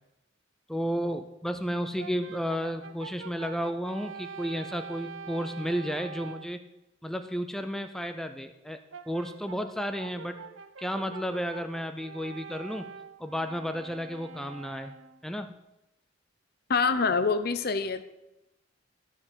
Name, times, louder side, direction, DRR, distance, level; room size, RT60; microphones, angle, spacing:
voice 1, 0.7-6.6 7.0-8.8 9.1-10.4 10.8-12.9 13.2-14.9 15.2-15.5, equal, ahead, 8 dB, 0.4 m, -32 dB
Brass instrument, 2.0-6.5 8.9-15.2, right 6 dB, 80° right, 0.7 m, -45 dB
voice 2, 16.7-18.0, left 4 dB, 50° left, 12 dB, 0.7 m, -25 dB
13.5 x 5.5 x 6.4 m, 0.92 s
head